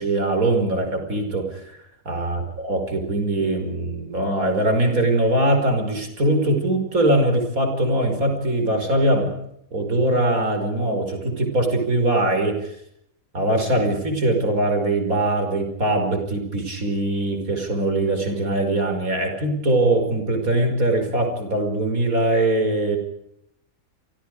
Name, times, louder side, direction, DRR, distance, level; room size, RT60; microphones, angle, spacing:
voice 1, 0.0-1.8 2.1-9.3 9.7-12.8 13.3-23.0, right 1 dB, 80° right, 5 dB, 5.8 m, -22 dB
30.0 x 25.0 x 5.0 m, 0.77 s
omnidirectional pair, 1.5 m